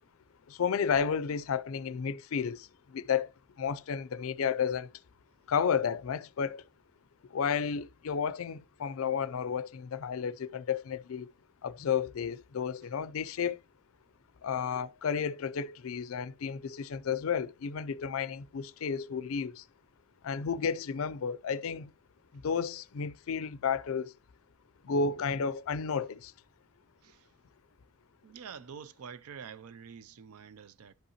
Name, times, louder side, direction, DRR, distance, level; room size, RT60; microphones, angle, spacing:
voice 1, 0.5-3.3 3.6-4.9 5.5-6.6 7.3-11.3 11.6-13.6 14.4-19.6 20.2-21.9 22.3-24.1 24.8-26.3, left 6 dB, 65° left, 0.4 m, -32 dB
voice 2, 28.2-30.9, right 7 dB, 80° right, 0.4 m, -47 dB
10.5 x 5.4 x 2.8 m
head